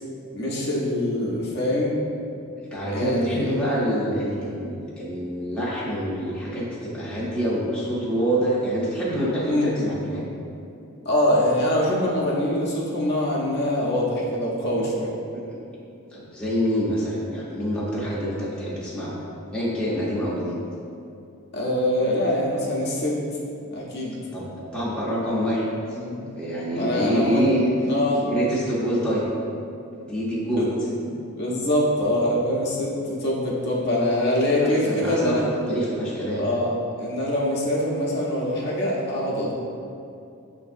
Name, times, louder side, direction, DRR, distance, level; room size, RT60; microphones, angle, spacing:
voice 1, 0.3-2.0 2.9-3.5 9.4-9.7 11.0-15.1 21.5-23.2 23.7-24.2 25.9-26.2 26.8-27.4 27.9-28.2 30.4-30.7 31.3-35.4 36.3-36.7 37.0-39.6, left 1 dB, 50° left, -4 dB, 0.6 m, -24 dB
voice 2, 2.6-10.3 15.3-15.4 16.1-19.2 19.5-20.6 24.3-26.0 26.4-27.7 28.2-29.3 30.0-30.7 34.6-36.4, equal, 5° left, -8 dB, 0.6 m, -26 dB
6.6 x 2.6 x 2.4 m, 2.6 s
head